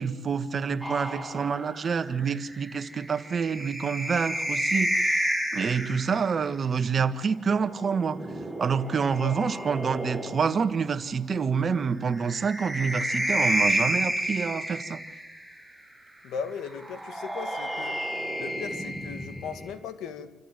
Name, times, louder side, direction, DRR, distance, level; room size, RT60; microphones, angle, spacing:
voice 1, 0.0-5.2 5.5-8.2 8.6-15.0, right 6 dB, 45° right, 10 dB, 1.6 m, -27 dB
sound 1, 0.8-6.3 7.7-10.7 12.1-15.5 16.8-19.7, right 1 dB, ahead, 6.7 m, -31 dB
voice 2, 16.2-18.0 18.4-20.3, left 6 dB, 85° left, 10 dB, 2.0 m, -37 dB
27.0 x 14.5 x 9.3 m, 1.0 s
cardioid pair, 90°, 0 cm